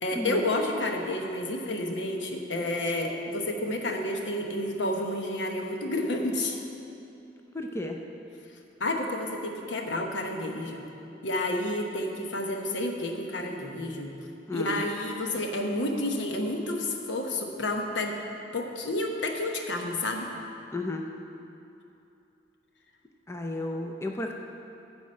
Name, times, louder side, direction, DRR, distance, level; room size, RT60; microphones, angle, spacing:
voice 1, 0.0-6.6 8.8-10.9 11.2-14.1 14.5-18.2 18.5-20.3, left 1 dB, 80° left, 2 dB, 0.9 m, -30 dB
voice 2, 7.5-8.0 14.5-14.8 20.7-21.1 23.3-24.3, left 1 dB, 15° left, 2 dB, 0.4 m, -32 dB
9.5 x 4.8 x 7.5 m, 2.8 s
head